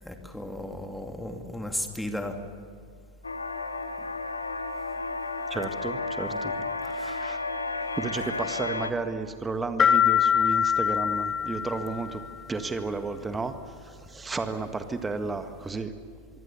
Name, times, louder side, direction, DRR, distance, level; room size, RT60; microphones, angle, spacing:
voice 1, 0.0-2.4 4.0-4.1 6.3-6.6 6.9-7.2 8.2-8.3, left 1 dB, 5° left, 4 dB, 2.7 m, -36 dB
sound 1, 3.2-8.9, left 3 dB, 80° left, 1.3 m, -32 dB
voice 2, 5.5-6.5 6.8-7.4 7.9-12.2 12.5-13.5 13.8-15.9, right 3 dB, 10° right, 9 dB, 1.7 m, -33 dB
sound 2, 9.8-12.4, left 8 dB, 20° left, 1.9 m, -24 dB
24.5 x 24.0 x 7.1 m, 2.1 s
figure-of-eight pair, 90°, 0 cm